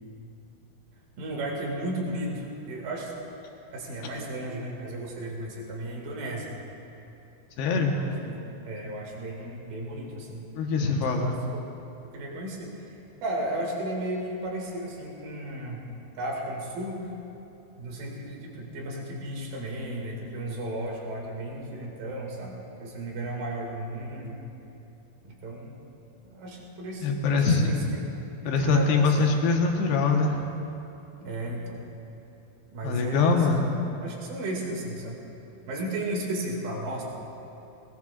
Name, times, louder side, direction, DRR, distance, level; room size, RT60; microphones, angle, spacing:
voice 1, 1.2-3.1 3.7-6.6 7.9-10.5 10.8-11.7 12.0-13.0 13.2-15.9 16.2-17.0 17.8-24.4 25.2-25.8 26.3-28.1 28.4-29.3 31.2-31.8 32.7-35.2 35.7-37.0, right 1 dB, 60° right, -1 dB, 3.7 m, -34 dB
voice 2, 7.6-8.0 10.6-11.3 27.0-27.7 28.4-30.4 32.8-33.6, left 4 dB, 75° left, 1 dB, 3.1 m, -23 dB
20.5 x 20.5 x 2.5 m, 3.0 s
omnidirectional pair, 5.0 m